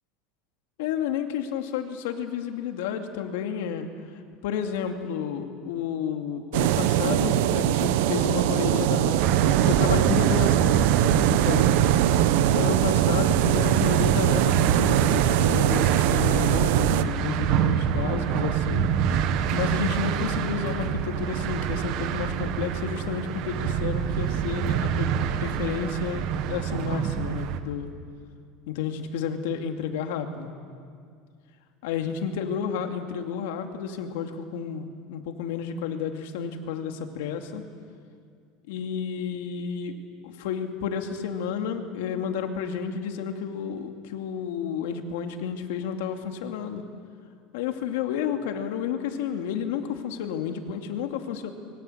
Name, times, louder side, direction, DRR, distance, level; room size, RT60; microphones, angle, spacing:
voice 1, 0.8-3.9 4.4-11.8 12.5-19.2 19.5-25.1 25.4-27.9 28.7-30.5 31.8-37.6 38.7-40.0 40.2-46.9 47.5-51.5, left 7 dB, 85° left, 5 dB, 2.5 m, -31 dB
sound 1, 6.5-17.0, right 12 dB, 75° right, 1.0 m, -22 dB
sound 2, 9.2-27.6, right 8 dB, 50° right, 1.5 m, -27 dB
26.0 x 23.0 x 8.1 m, 2.2 s
cardioid pair, 155°, 0 cm